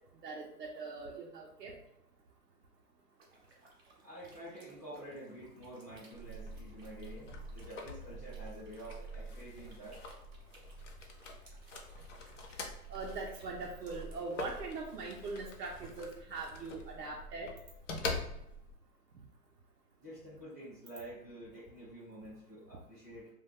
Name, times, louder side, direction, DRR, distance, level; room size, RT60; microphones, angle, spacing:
voice 1, 0.2-1.7 12.9-17.5, right 3 dB, 85° right, -1 dB, 0.7 m, -41 dB
sound 1, 3.2-14.6, right 2 dB, 40° right, 0.8 m, -63 dB
voice 2, 4.0-10.0 20.0-23.3, right 1 dB, 10° right, -14 dB, 0.5 m, -49 dB
sound 2, 6.1-18.8, left 2 dB, 50° left, 0.5 m, -45 dB
2.2 x 2.2 x 3.4 m, 0.78 s
hypercardioid pair, 165°, 47 cm